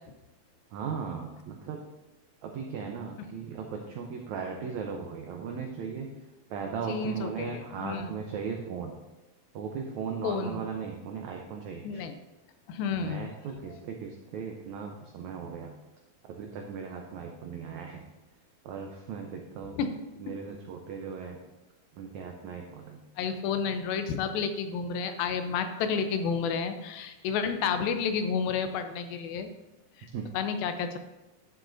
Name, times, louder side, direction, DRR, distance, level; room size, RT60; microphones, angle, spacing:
voice 1, 0.7-1.8 2.4-6.1 6.5-8.9 9.5-12.0 12.9-15.7 16.4-18.0 18.6-19.8 20.2-21.4 22.0-23.0 30.1-30.3, right 6 dB, 90° right, 2 dB, 1.6 m, -37 dB
voice 2, 6.9-8.1 10.2-10.6 11.8-12.1 12.7-13.3 19.8-19.9 23.2-29.5 30.0-30.1 30.3-31.0, left 6 dB, 80° left, 8 dB, 2.5 m, -30 dB
11.5 x 7.5 x 2.6 m, 1.0 s
omnidirectional pair, 4.2 m